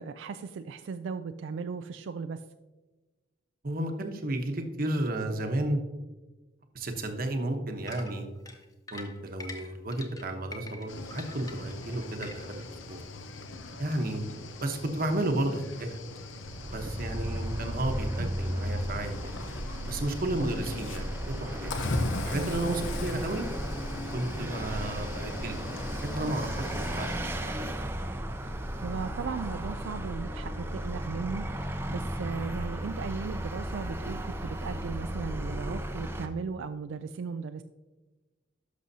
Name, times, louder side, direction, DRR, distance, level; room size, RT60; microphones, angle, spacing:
voice 1, 0.0-2.4 18.2-18.3 22.3-23.2 28.8-37.6, right 5 dB, 80° right, 9 dB, 0.4 m, -37 dB
voice 2, 3.6-5.8 6.7-8.3 8.9-13.1 13.8-14.3 14.6-16.0 16.7-19.4 19.9-21.7 22.2-23.5 24.1-27.7, right 1 dB, 50° right, 5 dB, 1.0 m, -33 dB
sound 1, 7.9-12.7, left 2 dB, 20° left, 0.8 m, -45 dB
Cricket / Waves surf, 10.9-27.2, left 2 dB, 85° left, 0.8 m, -39 dB
Vehicle, 16.5-36.3, equal, 10° right, 0.6 m, -35 dB
11.5 x 6.3 x 2.7 m, 1.2 s
head